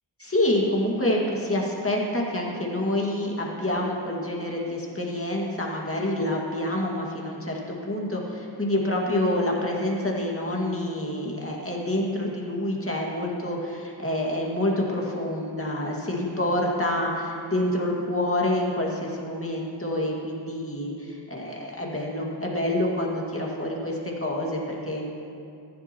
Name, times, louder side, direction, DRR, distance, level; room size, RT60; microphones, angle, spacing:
voice 1, 0.2-25.0, left 1 dB, 30° left, -2 dB, 2.1 m, -27 dB
15.0 x 11.0 x 3.0 m, 2.5 s
wide cardioid pair, 45°, 44 cm